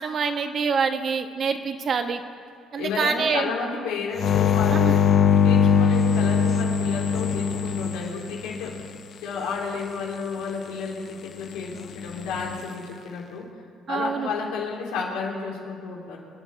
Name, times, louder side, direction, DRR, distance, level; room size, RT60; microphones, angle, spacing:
voice 1, 0.0-2.2 2.7-3.5 4.7-4.9 13.9-14.3, right 5 dB, 50° right, 6 dB, 1.3 m, -26 dB
voice 2, 2.8-5.2 5.4-8.8 9.2-13.5 13.9-16.2, left 5 dB, 90° left, -2 dB, 3.4 m, -32 dB
sound 1, 4.2-8.8 12.1-12.6, left 6 dB, 55° left, 0.7 m, -21 dB
25.5 x 9.6 x 4.7 m, 2.2 s
cardioid pair, 85°, 0 cm